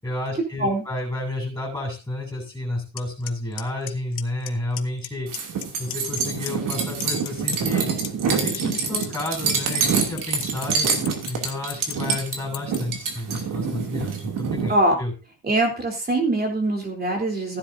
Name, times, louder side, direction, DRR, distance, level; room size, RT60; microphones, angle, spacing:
voice 1, 0.0-5.3 5.8-7.9 8.3-10.9 11.3-15.1, left 2 dB, 5° left, 0 dB, 6.7 m, -31 dB
Clock, 3.0-3.1 3.3-3.6 3.9-4.5 4.8-5.1 5.3-6.2 6.5-12.8, left 15 dB, 90° left, 1.1 m, -33 dB
sound 1, 5.3-14.7, right 5 dB, 55° right, 2.9 m, -26 dB
voice 2, 15.4-17.6, right 1 dB, 25° right, 2 dB, 3.7 m, -22 dB
15.5 x 10.5 x 2.8 m, 0.31 s
cardioid pair, 145°, 38 cm